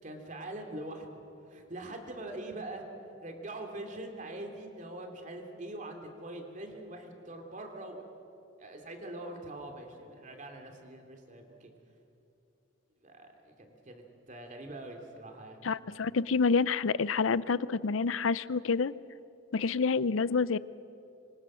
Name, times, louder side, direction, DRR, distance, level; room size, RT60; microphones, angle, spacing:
voice 1, 0.0-2.8 3.2-8.0 8.6-11.7 13.0-15.6, right 1 dB, 40° right, 3 dB, 3.0 m, -43 dB
voice 2, 15.6-18.9 19.5-20.6, left 4 dB, 85° left, 17 dB, 0.6 m, -28 dB
26.5 x 25.0 x 6.4 m, 2.8 s
head